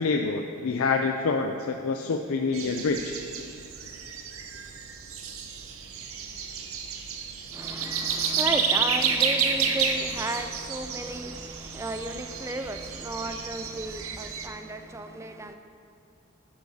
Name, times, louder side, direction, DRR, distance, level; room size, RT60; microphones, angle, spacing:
voice 1, 0.0-3.2, left 4 dB, 75° left, 4 dB, 0.5 m, -27 dB
sound 1, 2.5-14.5, right 6 dB, 75° right, 0.7 m, -31 dB
voice 2, 7.5-15.5, right 2 dB, 15° right, 7 dB, 0.4 m, -34 dB
11.0 x 11.0 x 2.8 m, 2.7 s
head